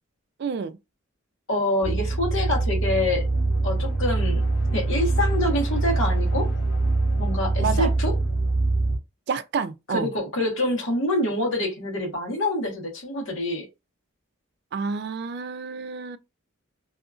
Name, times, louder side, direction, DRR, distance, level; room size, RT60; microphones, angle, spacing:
voice 1, 0.4-0.8 7.6-7.9 9.3-10.1 14.7-16.2, right 5 dB, 55° right, 0.3 m, -29 dB
voice 2, 1.5-3.2 3.6-4.4 4.7-6.5 7.2-8.1 9.9-13.7, left 1 dB, 80° left, 1.2 m, -26 dB
sound 1, 1.8-9.0, right 2 dB, 55° left, 1.7 m, -24 dB
2.7 x 2.4 x 2.4 m
head